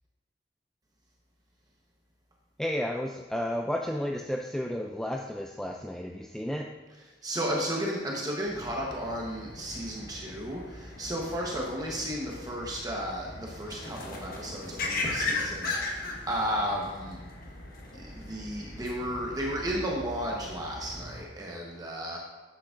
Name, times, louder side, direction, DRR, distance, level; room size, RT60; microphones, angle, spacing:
voice 1, 2.6-6.8, equal, 5° left, 1 dB, 0.3 m, -32 dB
voice 2, 7.2-17.2 17.9-22.2, equal, 20° right, -2 dB, 1.0 m, -33 dB
sound 1, 8.4-21.2, left 2 dB, 55° left, 1.2 m, -38 dB
10.0 x 7.6 x 2.5 m, 1.3 s
head